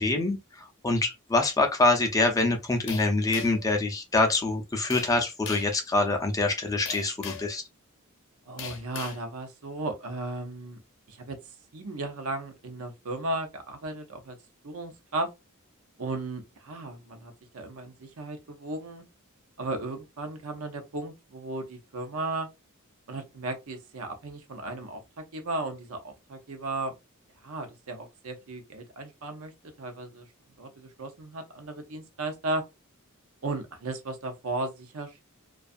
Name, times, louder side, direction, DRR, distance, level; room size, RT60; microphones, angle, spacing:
voice 1, 0.0-7.6, left 2 dB, 15° left, 0.4 m, -25 dB
sound 1, 2.9-3.7 4.9-5.1 5.5-5.8 6.9-7.5 8.6-9.2, left 7 dB, 60° left, 0.6 m, -39 dB
voice 2, 8.5-10.8 11.1-14.4 14.6-15.3 16.0-19.0 19.6-22.5 23.1-26.9 27.4-30.3 30.6-32.6 33.4-35.2, right 2 dB, 70° right, 0.6 m, -35 dB
2.4 x 2.3 x 2.5 m
head